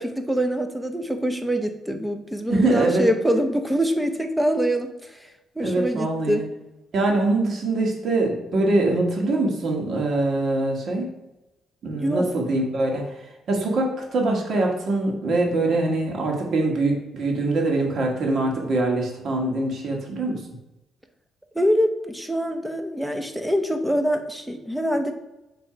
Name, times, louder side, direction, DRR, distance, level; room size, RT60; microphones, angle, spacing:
voice 1, 0.0-4.9 5.6-6.5 11.9-12.3 21.5-25.1, equal, 5° right, 6 dB, 0.8 m, -24 dB
voice 2, 2.5-3.1 5.6-6.5 6.9-11.1 11.8-13.1 13.5-20.4, right 2 dB, 60° right, 0 dB, 1.7 m, -23 dB
7.5 x 3.3 x 5.0 m, 0.96 s
cardioid pair, 90°, 0 cm